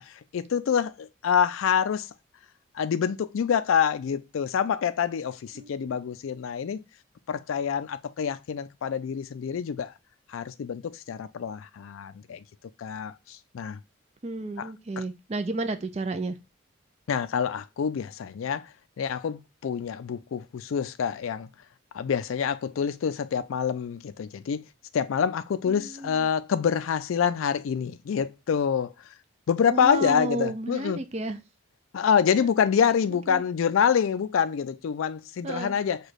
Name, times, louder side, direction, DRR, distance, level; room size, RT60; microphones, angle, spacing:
voice 1, 0.0-2.1 2.7-6.8 7.3-9.9 10.3-12.4 12.8-13.8 14.6-14.7 15.0-15.1 17.1-18.7 19.0-21.5 21.9-24.6 24.9-28.9 29.5-31.0 31.9-36.0, left 7 dB, 80° left, 0.4 m, -26 dB
voice 2, 5.6-6.0 14.2-16.4 25.7-26.3 29.7-31.4 33.3-33.4 35.4-35.8, right 2 dB, 30° right, 0.4 m, -32 dB
4.9 x 2.3 x 4.0 m
head